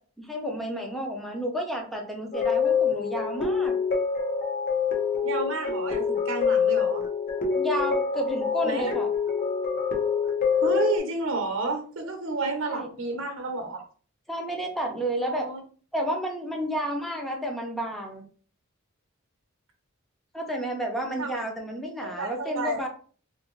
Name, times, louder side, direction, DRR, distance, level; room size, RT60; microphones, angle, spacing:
voice 1, 0.2-3.7 7.5-9.1 12.6-12.9 14.3-15.5 15.9-18.2 20.3-22.9, equal, ahead, 1 dB, 0.6 m, -31 dB
sound 1, 2.3-11.0, left 6 dB, 45° left, 0.8 m, -26 dB
voice 2, 5.2-7.0 8.6-8.9 10.6-13.8 15.2-15.6 21.2-21.3 22.0-22.8, right 3 dB, 65° right, 4 dB, 0.8 m, -31 dB
2.9 x 2.6 x 3.0 m, 0.42 s
head